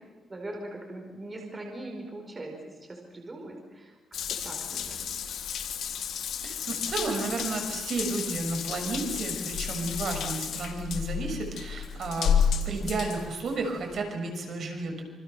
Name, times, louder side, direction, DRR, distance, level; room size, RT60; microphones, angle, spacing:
voice 1, 0.3-4.0 4.3-5.2, right 1 dB, 25° right, 2 dB, 5.0 m, -41 dB
Water tap faucet / Bathtub (filling or washing) / Drip, 4.1-14.0, left 7 dB, 75° left, 3.6 m, -31 dB
voice 2, 6.4-12.4 12.6-15.0, right 3 dB, 55° right, 3 dB, 6.3 m, -32 dB
28.0 x 27.0 x 7.0 m, 1.3 s
cardioid pair, 130°, 0 cm